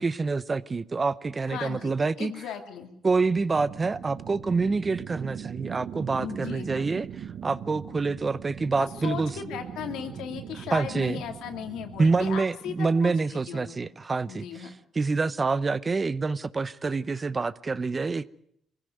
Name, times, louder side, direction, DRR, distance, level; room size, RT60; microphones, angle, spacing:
voice 1, 0.0-2.3 3.0-9.3 10.7-11.2 12.0-18.3, right 4 dB, 30° right, 0.8 m, -27 dB
voice 2, 1.5-2.9 6.2-6.9 8.8-13.9 14.3-14.7, left 8 dB, 90° left, 2.7 m, -37 dB
sound 1, 3.5-12.4, right 9 dB, 65° right, 1.0 m, -40 dB
23.0 x 16.0 x 9.2 m
cardioid pair, 90°, 0 cm